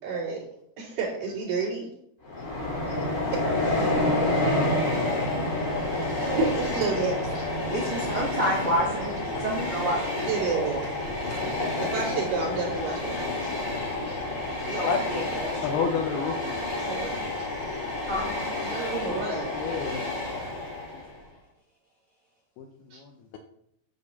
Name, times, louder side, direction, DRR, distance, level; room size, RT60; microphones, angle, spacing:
voice 1, 0.0-0.4 0.8-1.9 3.3-4.6 6.2-7.5 10.3-10.8 11.8-13.5 14.0-14.2 16.7-17.5 18.6-19.7 22.9-23.0, right 4 dB, 50° right, -9 dB, 3.9 m, -31 dB
Train, 2.2-21.2, left 2 dB, 25° left, 1.9 m, -29 dB
voice 2, 4.4-4.7 7.6-9.1 9.4-10.8 14.7-16.0 18.1-18.2, equal, 85° right, -3 dB, 1.1 m, -30 dB
voice 3, 15.6-16.4 19.5-20.0 20.6-20.7 22.6-23.4, left 6 dB, 85° left, 4 dB, 2.2 m, -30 dB
8.7 x 5.0 x 6.9 m, 0.72 s
omnidirectional pair, 5.4 m